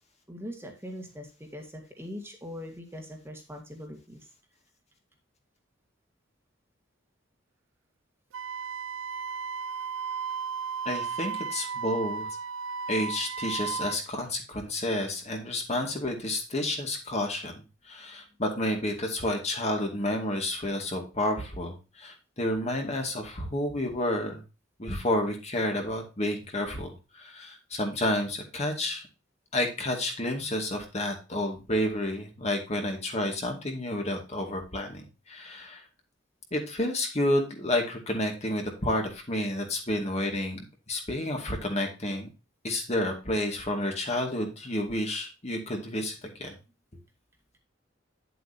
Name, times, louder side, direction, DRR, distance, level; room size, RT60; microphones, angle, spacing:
voice 1, 0.3-4.3, equal, 10° right, 2 dB, 1.9 m, -41 dB
Wind instrument woodwind instrument, 8.3-14.0, right 5 dB, 85° right, 0.5 m, -34 dB
voice 2, 10.9-12.3 12.9-24.4 24.8-29.0 29.5-35.8 36.5-42.3 42.6-46.5, left 1 dB, 35° left, 3 dB, 2.3 m, -30 dB
10.0 x 7.8 x 2.8 m, 0.30 s
head